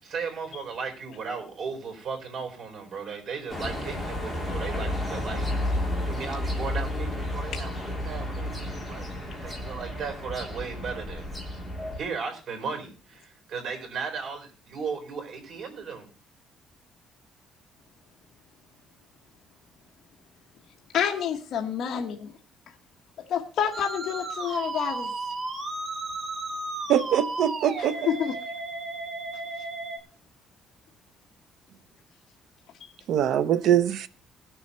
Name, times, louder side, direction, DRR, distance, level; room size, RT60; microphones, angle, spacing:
voice 1, 0.0-5.5 6.0-9.1 9.4-11.3 12.0-16.1, right 5 dB, 50° right, 4.5 m, -36 dB
sound 1, 3.5-12.0, left 1 dB, ahead, 2.9 m, -32 dB
voice 2, 20.9-22.3 23.3-25.1 27.8-28.3 32.8-32.9, left 8 dB, 55° left, 1.3 m, -28 dB
Musical instrument, 23.7-30.0, right 2 dB, 35° right, 2.1 m, -34 dB
voice 3, 26.9-28.0 33.1-34.1, right 10 dB, 70° right, 0.7 m, -23 dB
19.5 x 6.9 x 4.2 m
cardioid pair, 160°, 0 cm